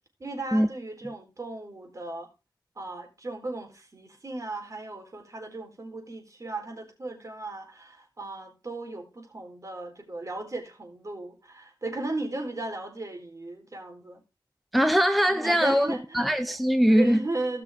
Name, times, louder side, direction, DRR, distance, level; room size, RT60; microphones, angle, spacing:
voice 1, 0.2-2.3 2.8-14.2 15.3-16.3 16.8-17.6, right 2 dB, 40° right, 4.0 m, -36 dB
voice 2, 14.7-15.9 16.1-17.3, equal, ahead, 0.7 m, -21 dB
18.0 x 6.0 x 3.6 m
wide cardioid pair, 100°, 8 cm